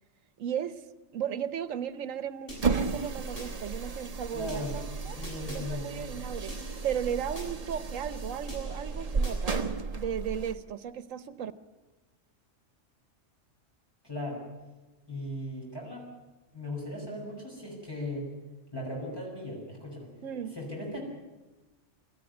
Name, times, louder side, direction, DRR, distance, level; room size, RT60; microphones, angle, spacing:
voice 1, 0.4-0.8 1.1-5.2 5.5-6.6 6.8-9.6 9.9-11.5 20.2-20.5, right 9 dB, 90° right, 14 dB, 1.3 m, -35 dB
sound 1, 2.5-3.5 4.5-5.6 6.5-7.5 8.5-9.6, equal, 45° left, 8.1 m, -46 dB
sound 2, 2.5-10.6, right 4 dB, 30° right, 1.1 m, -34 dB
voice 2, 4.3-4.7 5.1-5.9 14.0-14.5 15.1-16.1 16.5-18.3 18.7-20.1 20.5-21.0, left 1 dB, 20° left, -3 dB, 5.9 m, -37 dB
25.5 x 14.0 x 9.7 m, 1.2 s
omnidirectional pair, 1.3 m